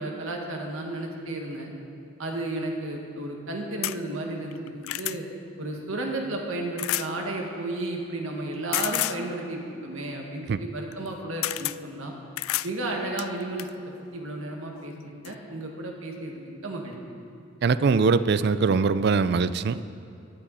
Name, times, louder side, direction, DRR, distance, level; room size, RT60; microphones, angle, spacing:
voice 1, 0.0-1.7 2.2-5.2 5.6-12.1 12.6-13.7 14.1-17.0, right 2 dB, 80° right, 1 dB, 1.8 m, -33 dB
sound 1, 3.8-4.0 4.5-5.2 6.8-7.1 8.7-9.2 10.9-11.1 11.4-11.8 12.4-12.7 13.2-13.7 14.8-14.9 15.2-15.3, left 17 dB, 85° left, 0.3 m, -29 dB
voice 2, 17.6-19.9, right 4 dB, 50° right, 15 dB, 0.4 m, -22 dB
16.0 x 11.5 x 4.2 m, 2.7 s
head